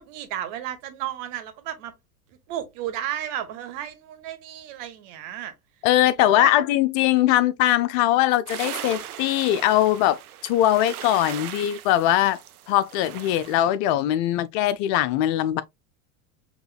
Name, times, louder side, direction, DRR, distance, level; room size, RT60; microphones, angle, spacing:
voice 1, 0.0-1.9 2.3-5.5 6.2-6.5, right 11 dB, 60° right, 1.3 m, -33 dB
voice 2, 5.8-12.4 12.7-15.6, left 13 dB, 50° left, 0.5 m, -21 dB
sound 1, 8.5-13.6, right 11 dB, 85° right, 0.6 m, -38 dB
6.0 x 2.9 x 2.3 m
hypercardioid pair, 85°, 43 cm